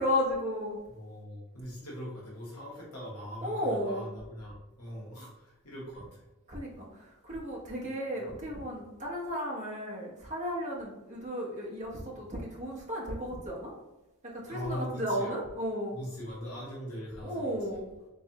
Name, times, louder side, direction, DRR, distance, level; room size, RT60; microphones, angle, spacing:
voice 1, 0.0-0.8 3.4-4.1 6.5-13.7 14.2-15.9 17.2-17.8, equal, 35° right, -4 dB, 0.9 m, -34 dB
voice 2, 0.9-6.3 14.5-15.3 15.9-17.8, equal, 80° left, -5 dB, 1.1 m, -41 dB
3.4 x 3.2 x 2.8 m, 1.0 s
head